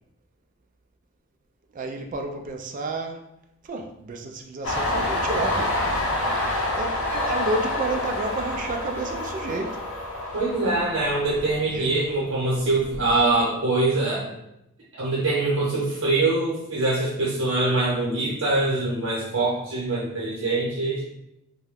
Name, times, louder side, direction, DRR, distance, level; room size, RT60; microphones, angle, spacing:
voice 1, 1.7-3.3 3.6-5.8 6.8-9.9 11.7-11.9, right 2 dB, 40° right, 4 dB, 0.3 m, -31 dB
Train, 4.6-12.1 12.4-13.3, left 1 dB, 85° left, 0.6 m, -28 dB
voice 2, 10.3-14.3 14.9-21.0, right 2 dB, 80° right, -6 dB, 0.8 m, -24 dB
2.8 x 2.1 x 3.5 m, 0.83 s
head